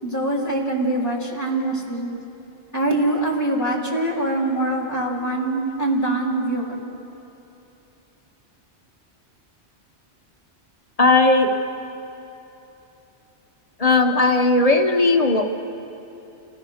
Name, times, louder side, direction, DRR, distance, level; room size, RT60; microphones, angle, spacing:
voice 1, 0.0-2.1 2.7-6.9, right 2 dB, 15° left, -2 dB, 3.7 m, -23 dB
voice 2, 11.0-11.5 13.8-15.6, left 2 dB, 35° left, 4 dB, 1.4 m, -17 dB
30.0 x 19.5 x 6.6 m, 2.9 s
omnidirectional pair, 1.2 m